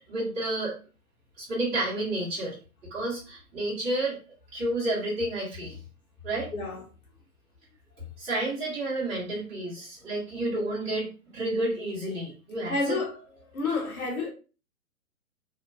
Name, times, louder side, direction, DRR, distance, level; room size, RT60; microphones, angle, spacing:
voice 1, 0.1-0.8 1.4-2.6 2.9-4.2 4.5-5.8 6.2-6.5 8.2-13.0, right 1 dB, 15° right, 0.9 m, -30 dB
voice 2, 6.5-6.8 12.7-13.2 13.5-14.3, left 3 dB, 75° left, 1.0 m, -29 dB
2.9 x 2.2 x 2.3 m
figure-of-eight pair, 125°, 43 cm